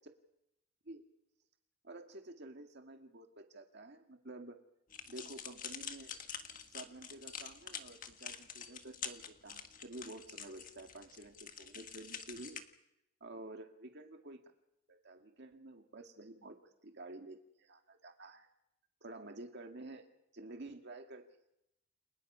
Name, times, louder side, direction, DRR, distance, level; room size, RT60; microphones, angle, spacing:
voice 1, 1.8-4.6 5.1-6.2 6.7-12.6 13.2-14.4 14.9-16.6 16.8-18.5 19.0-20.1 20.3-21.2, right 2 dB, 55° right, 4 dB, 2.0 m, -50 dB
sound 1, 4.9-12.6, left 7 dB, 40° left, 1.6 m, -47 dB
29.5 x 23.0 x 5.6 m, 0.84 s
head